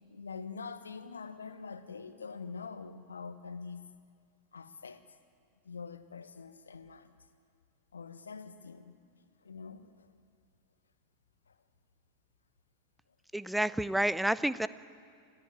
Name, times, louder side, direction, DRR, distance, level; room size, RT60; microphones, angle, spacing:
voice 1, 0.0-3.9 4.5-5.0 5.6-7.2 7.9-9.0 9.4-10.1 11.5-11.6, left 5 dB, 70° left, 1.2 m, -45 dB
voice 2, 13.3-14.7, right 1 dB, 5° right, 0.6 m, -29 dB
25.5 x 15.5 x 8.9 m
figure-of-eight pair, 90°, 0 cm